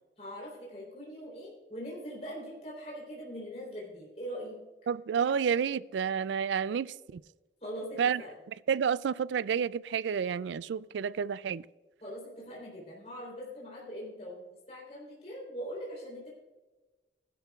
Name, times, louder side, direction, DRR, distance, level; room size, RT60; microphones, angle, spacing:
voice 1, 0.2-4.6 7.6-8.3 12.0-16.3, equal, 35° left, 3.6 m, -42 dB
voice 2, 4.9-7.2 8.0-8.2 8.7-11.6, right 7 dB, 85° right, 0.3 m, -30 dB
16.0 x 12.0 x 2.4 m
head